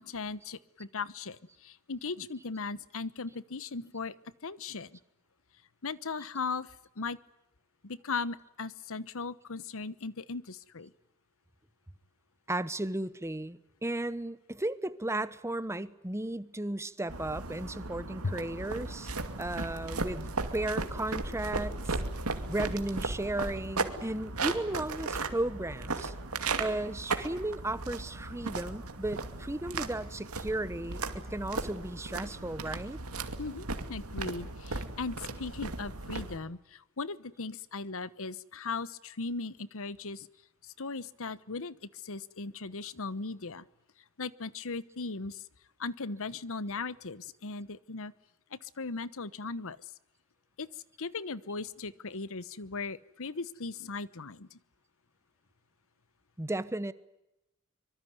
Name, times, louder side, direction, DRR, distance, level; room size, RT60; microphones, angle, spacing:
voice 1, 0.0-4.1 4.4-5.0 5.8-7.2 7.8-10.9 18.2-18.3 33.4-40.3 40.6-43.6 44.2-45.5 45.8-48.1 48.5-49.9 50.6-54.6, left 4 dB, 65° left, 1.1 m, -38 dB
voice 2, 12.5-19.1 19.4-22.0 22.5-26.1 26.6-33.0 56.4-56.9, right 1 dB, 15° right, 1.1 m, -35 dB
sound 1, 17.1-36.4, right 3 dB, 75° right, 2.4 m, -36 dB
24.5 x 24.0 x 9.5 m
head